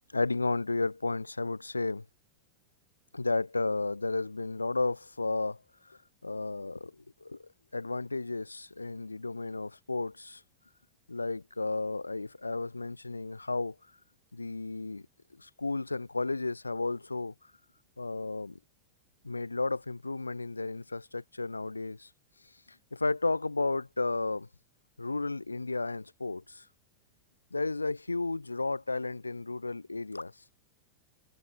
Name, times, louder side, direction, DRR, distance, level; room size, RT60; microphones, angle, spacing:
voice 1, 0.1-2.0 3.1-7.0 7.2-10.4 11.1-13.8 14.3-15.1 15.4-17.3 18.0-18.6 19.2-22.1 22.9-24.5 25.0-26.7 27.5-30.3, left 3 dB, 80° left, 0.8 m, -33 dB
figure-of-eight pair, 90°, 0 cm